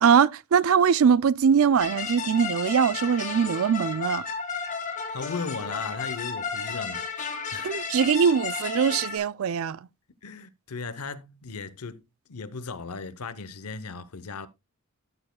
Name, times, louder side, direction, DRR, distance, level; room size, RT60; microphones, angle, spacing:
voice 1, 0.0-4.2 7.6-9.8, right 7 dB, 70° right, 0.4 m, -22 dB
sound 1, 1.8-9.2, left 5 dB, 35° left, 1.6 m, -33 dB
voice 2, 5.1-7.1 7.5-7.8 10.2-12.0 12.3-14.5, left 4 dB, 90° left, 0.8 m, -36 dB
13.5 x 7.2 x 2.2 m
head